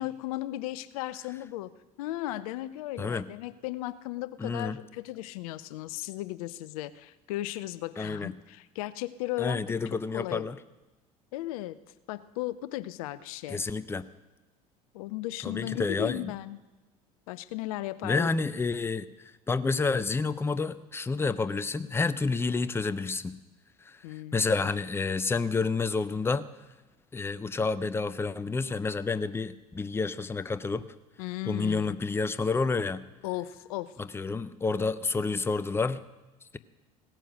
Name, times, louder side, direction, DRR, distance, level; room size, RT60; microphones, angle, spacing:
voice 1, 0.0-1.7 2.0-10.5 11.3-11.8 12.1-13.6 14.9-16.6 17.3-18.3 24.0-24.5 31.2-32.0 33.2-33.9, left 16 dB, 70° left, 17 dB, 0.5 m, -36 dB
voice 2, 4.4-4.8 8.0-8.3 9.4-10.6 13.5-14.0 15.4-16.3 18.0-19.1 19.5-23.4 23.8-24.0 24.3-26.5 27.1-30.9 31.5-33.0 34.0-36.0, left 4 dB, 10° left, 15 dB, 0.6 m, -29 dB
17.0 x 9.1 x 6.3 m, 1.1 s
hypercardioid pair, 70°, 19 cm